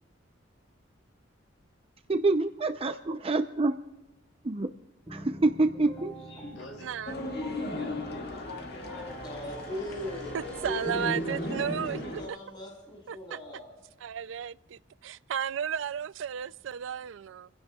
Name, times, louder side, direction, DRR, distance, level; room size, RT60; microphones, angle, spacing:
voice 1, 2.1-3.7 4.5-4.7 5.1-6.1, right 2 dB, 30° right, 0.6 m, -26 dB
sound 1, 5.1-11.8, right 1 dB, 10° left, 3.6 m, -47 dB
voice 2, 6.2-7.0 7.7-10.7 11.2-11.4, left 2 dB, 85° left, 5.2 m, -48 dB
voice 3, 6.8-7.1 10.3-12.2 13.1-13.4 14.0-17.5, right 8 dB, 80° right, 0.4 m, -34 dB
sound 2, 7.1-12.3, left 1 dB, 55° left, 2.0 m, -36 dB
voice 4, 9.2-13.7, left 1 dB, 25° left, 4.9 m, -40 dB
28.5 x 16.0 x 2.3 m
head